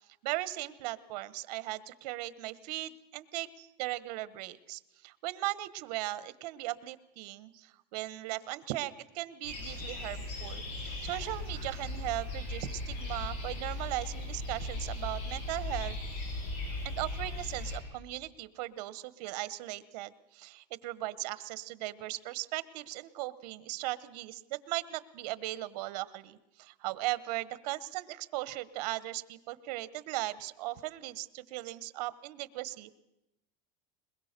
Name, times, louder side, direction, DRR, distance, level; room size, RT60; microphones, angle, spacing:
voice 1, 0.2-16.0 16.8-32.9, right 17 dB, 65° right, 16 dB, 1.1 m, -38 dB
sound 1, 9.4-17.8, left 2 dB, 70° left, 7.6 m, -38 dB
21.5 x 21.5 x 6.7 m, 0.90 s
supercardioid pair, 155°, 21 cm